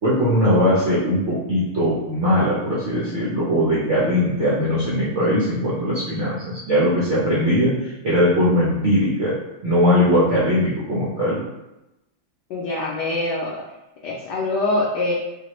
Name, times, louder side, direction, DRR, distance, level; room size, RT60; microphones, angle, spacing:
voice 1, 0.0-9.3 9.6-11.4, equal, 80° right, -8 dB, 0.6 m, -20 dB
voice 2, 12.5-13.6 14.0-15.1, left 2 dB, 70° left, -4 dB, 1.0 m, -24 dB
4.3 x 2.2 x 3.0 m, 0.97 s
omnidirectional pair, 2.2 m